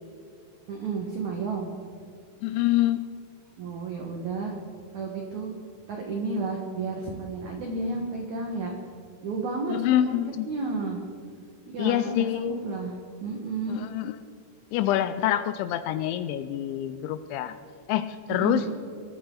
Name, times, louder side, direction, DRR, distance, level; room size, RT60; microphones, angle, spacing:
voice 1, 0.7-1.7 3.6-4.5 4.9-5.5 5.9-8.8 9.2-10.2 10.5-11.0 11.7-12.9 13.2-13.8 18.3-18.7, right 3 dB, 75° right, 1 dB, 1.7 m, -31 dB
voice 2, 2.4-3.1 9.7-10.5 11.8-12.6 13.7-14.2 14.7-17.6 17.9-18.7, left 13 dB, 85° left, 11 dB, 2.7 m, -26 dB
23.0 x 13.5 x 3.9 m, 2.4 s
omnidirectional pair, 5.7 m